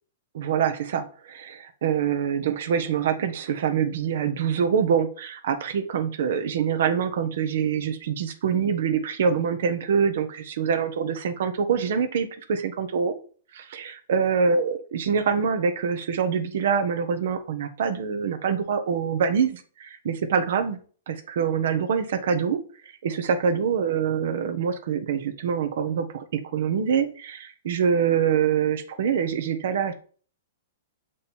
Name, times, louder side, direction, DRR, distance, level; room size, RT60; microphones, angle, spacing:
voice 1, 0.3-13.1 13.5-20.8 21.1-22.6 23.0-29.9, right 7 dB, 65° right, 8 dB, 1.2 m, -25 dB
6.8 x 5.2 x 4.3 m, 0.42 s
hypercardioid pair, 130°, 0 cm